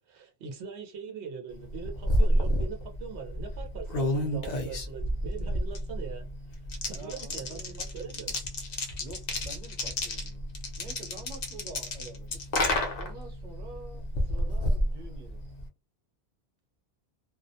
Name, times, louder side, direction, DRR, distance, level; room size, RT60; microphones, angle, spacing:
voice 1, 0.0-6.3 6.8-8.4 8.7-8.9, right 6 dB, 85° right, 0.9 m, -41 dB
sound 1, 1.6-15.7, left 1 dB, 50° left, 0.6 m, -30 dB
voice 2, 6.9-7.9 9.0-10.5 10.8-12.4 12.9-15.4, right 3 dB, 45° right, 1.0 m, -47 dB
2.3 x 2.0 x 2.6 m
omnidirectional pair, 1.1 m